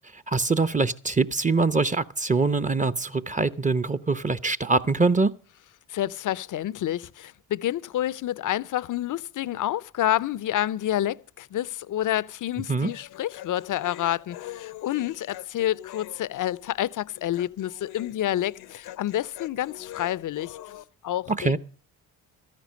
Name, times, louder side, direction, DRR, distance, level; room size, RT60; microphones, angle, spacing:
voice 1, 0.1-5.3 12.7-12.9 21.4-21.6, right 3 dB, 20° right, 0.8 m, -23 dB
voice 2, 5.9-20.6 21.0-21.6, left 12 dB, 55° left, 0.6 m, -28 dB
Human voice, 12.8-20.8, left 13 dB, 80° left, 0.9 m, -44 dB
13.5 x 10.5 x 6.4 m
supercardioid pair, 60°, 37 cm